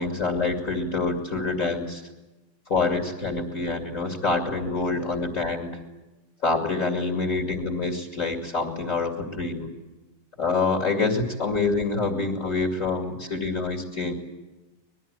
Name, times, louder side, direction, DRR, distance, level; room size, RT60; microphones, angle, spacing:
voice 1, 0.0-2.0 2.7-5.8 6.4-9.7 10.4-14.1, left 3 dB, 25° left, 3 dB, 1.9 m, -26 dB
25.0 x 21.0 x 8.9 m, 1.1 s
omnidirectional pair, 5.0 m